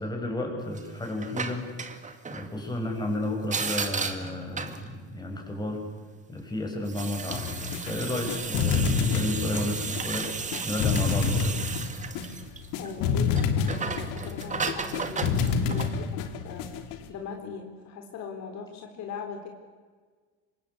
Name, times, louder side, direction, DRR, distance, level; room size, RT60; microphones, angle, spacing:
voice 1, 0.0-1.7 2.3-5.8 6.3-10.3 10.6-11.6, left 1 dB, 10° left, 2 dB, 7.1 m, -32 dB
sound 1, 0.7-2.5 3.4-4.9 6.8-12.9 13.3-16.0, right 5 dB, 20° right, 2.3 m, -34 dB
sound 2, 7.3-17.1, left 5 dB, 75° left, 3.2 m, -28 dB
voice 2, 12.8-16.6 17.1-19.5, left 6 dB, 55° left, 3 dB, 4.1 m, -40 dB
27.5 x 25.0 x 8.4 m, 1.5 s
cardioid pair, 130°, 33 cm